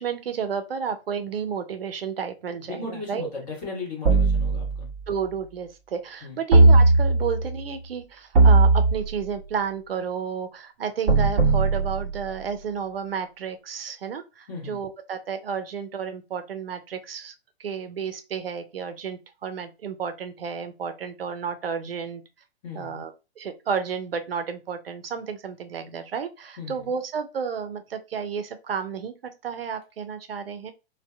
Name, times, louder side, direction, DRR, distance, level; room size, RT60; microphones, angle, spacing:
voice 1, 0.0-3.3 5.1-17.3 17.6-22.2 22.7-29.1 29.4-30.7, right 6 dB, 65° right, 8 dB, 0.5 m, -31 dB
voice 2, 2.6-4.9 6.2-6.4 14.5-14.8 22.6-22.9 26.6-26.9, left 4 dB, 35° left, -2 dB, 1.2 m, -36 dB
sound 1, 4.1-5.1 6.5-7.5 8.3-9.4 11.1-12.5, right 3 dB, 25° right, 1.1 m, -18 dB
2.5 x 2.2 x 2.3 m, 0.28 s
figure-of-eight pair, 120°, 32 cm